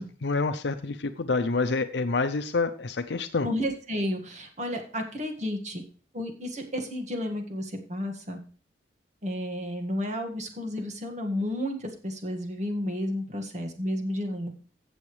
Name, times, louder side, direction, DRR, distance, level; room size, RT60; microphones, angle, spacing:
voice 1, 0.0-3.5, left 3 dB, 75° left, 9 dB, 0.6 m, -27 dB
voice 2, 3.4-5.8 6.1-8.4 9.2-14.5, left 1 dB, 40° right, 4 dB, 1.8 m, -32 dB
15.5 x 7.1 x 3.2 m, 0.40 s
head